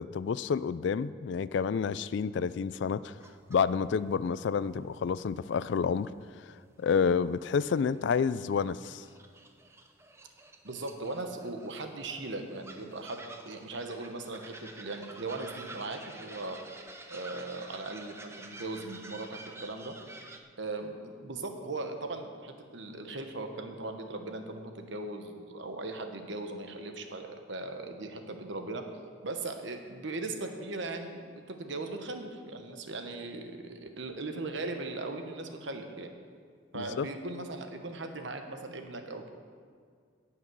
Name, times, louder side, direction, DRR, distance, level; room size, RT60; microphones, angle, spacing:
voice 1, 0.0-3.1 3.5-6.1 6.4-6.5 6.8-9.0 36.7-37.1, left 6 dB, 65° left, 17 dB, 0.3 m, -29 dB
sound 1, 3.2-3.6 3.9-4.0 5.7-5.8 6.3-6.4 7.5-8.3 8.6-20.4, right 2 dB, 15° right, 0.6 m, -49 dB
voice 2, 10.6-16.6 17.1-19.9 20.6-28.9 29.2-36.1 36.7-39.3, right 2 dB, 65° right, 5 dB, 1.2 m, -39 dB
17.0 x 6.0 x 6.2 m, 2.1 s
head